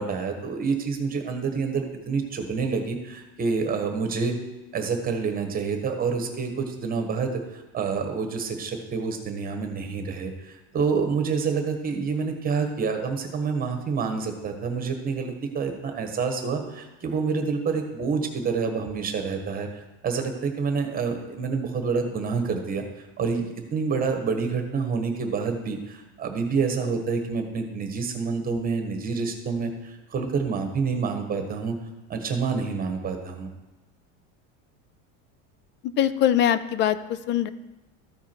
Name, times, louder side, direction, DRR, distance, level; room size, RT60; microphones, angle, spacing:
voice 1, 0.0-4.3 4.7-22.8 23.2-31.7 32.1-33.5, right 5 dB, 25° right, 5 dB, 1.4 m, -28 dB
voice 2, 36.0-37.5, left 10 dB, 35° left, 15 dB, 0.4 m, -22 dB
14.0 x 4.7 x 4.5 m, 1.0 s
supercardioid pair, 140°, 35 cm